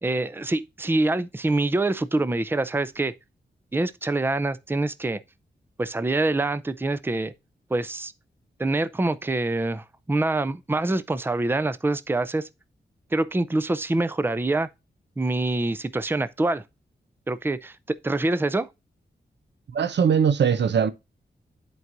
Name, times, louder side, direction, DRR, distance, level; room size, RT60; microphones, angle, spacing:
voice 1, 0.0-3.1 3.7-5.2 5.8-7.3 7.7-8.1 8.6-12.5 13.1-14.7 15.2-16.6 17.3-18.7, right 2 dB, 10° right, 0.5 m, -25 dB
voice 2, 19.7-20.9, right 7 dB, 75° right, 0.7 m, -20 dB
11.0 x 4.7 x 2.5 m
wide cardioid pair, 85°, 18 cm